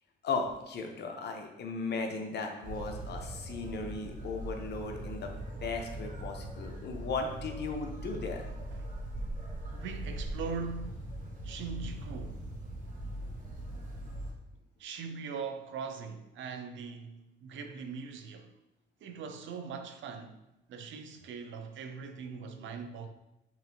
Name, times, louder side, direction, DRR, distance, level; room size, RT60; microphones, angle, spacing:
voice 1, 0.2-5.3 5.6-8.5, left 4 dB, 55° left, 0.8 m, -36 dB
sound 1, 2.6-14.3, right 1 dB, 45° right, 1.1 m, -40 dB
voice 2, 9.7-11.1 11.4-12.4 14.8-18.5 19.0-20.4 20.7-23.1, right 5 dB, 70° right, 0.5 m, -41 dB
5.6 x 2.6 x 2.7 m
cardioid pair, 90°, 20 cm